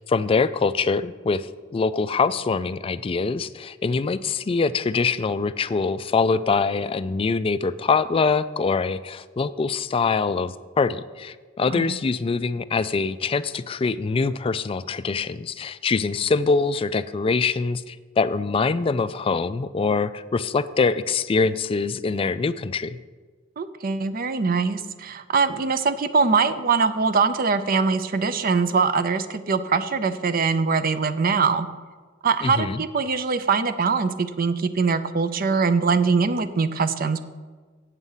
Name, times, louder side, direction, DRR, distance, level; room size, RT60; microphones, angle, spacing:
voice 1, 0.0-1.5 1.7-23.0 32.4-32.8, left 4 dB, 30° left, 14 dB, 0.3 m, -24 dB
voice 2, 23.6-31.7 32.2-37.2, right 5 dB, 45° right, 12 dB, 0.5 m, -22 dB
8.2 x 7.9 x 5.6 m, 1.4 s
head